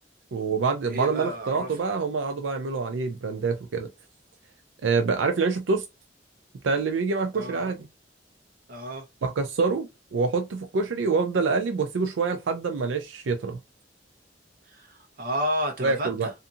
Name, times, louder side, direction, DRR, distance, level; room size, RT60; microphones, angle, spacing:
voice 1, 0.3-3.9 4.8-5.8 6.6-7.9 9.2-13.6 15.8-16.3, right 4 dB, 90° right, 0.4 m, -26 dB
voice 2, 0.9-1.7 7.3-7.7 8.7-9.1 14.7-16.3, equal, 50° right, 0.8 m, -31 dB
2.7 x 2.5 x 2.4 m
head